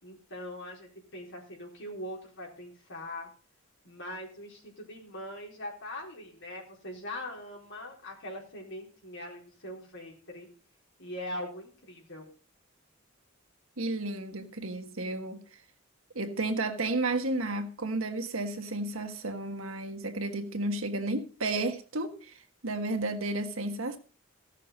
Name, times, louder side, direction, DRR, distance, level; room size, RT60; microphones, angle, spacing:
voice 1, 0.0-3.3 3.8-10.5 11.0-12.3, left 1 dB, 60° left, 4.2 m, -41 dB
voice 2, 13.8-15.4 16.1-24.0, right 2 dB, 75° right, 1.5 m, -32 dB
16.0 x 6.6 x 5.2 m
head